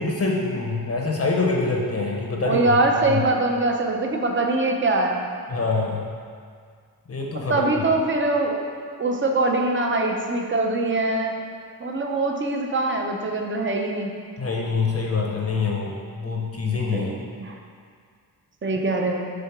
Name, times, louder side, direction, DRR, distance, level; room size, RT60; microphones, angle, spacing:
voice 1, 0.0-2.6 3.0-3.2 5.5-6.1 7.1-7.7 14.4-17.1, left 3 dB, 40° left, -1 dB, 0.6 m, -25 dB
voice 2, 2.4-5.2 7.3-8.7 9.0-11.3 11.8-14.1 16.9-17.5 18.6-19.3, right 2 dB, 30° right, 1 dB, 0.6 m, -23 dB
7.0 x 3.7 x 5.9 m, 2.1 s
wide cardioid pair, 175°, 37 cm